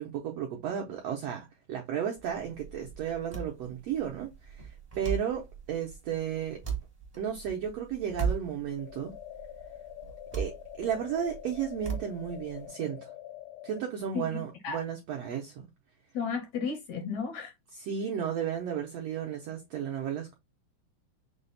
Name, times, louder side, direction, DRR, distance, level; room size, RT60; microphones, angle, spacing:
voice 1, 0.0-4.7 5.0-6.6 7.2-9.1 10.3-13.1 13.6-15.7 17.7-20.3, right 8 dB, 90° right, 1.4 m, -34 dB
sound 1, 2.1-12.7, right 6 dB, 60° right, 0.4 m, -39 dB
sound 2, 8.8-13.8, left 12 dB, 90° left, 2.3 m, -45 dB
voice 2, 14.1-14.8 16.1-17.5, left 5 dB, 75° left, 1.7 m, -34 dB
6.1 x 2.1 x 3.9 m
omnidirectional pair, 3.9 m